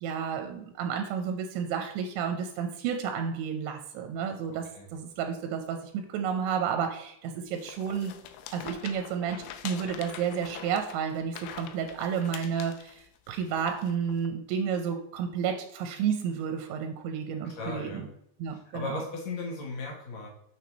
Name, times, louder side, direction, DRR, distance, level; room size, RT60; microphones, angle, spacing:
voice 1, 0.0-8.1 8.5-18.1 18.4-19.0, right 7 dB, 85° right, 5 dB, 2.9 m, -31 dB
voice 2, 4.5-4.9 17.4-18.1 18.5-20.3, left 3 dB, 70° left, -1 dB, 2.2 m, -37 dB
sound 1, 7.6-14.3, left 9 dB, 85° left, 3.0 m, -44 dB
7.0 x 6.5 x 3.1 m, 0.73 s
omnidirectional pair, 5.4 m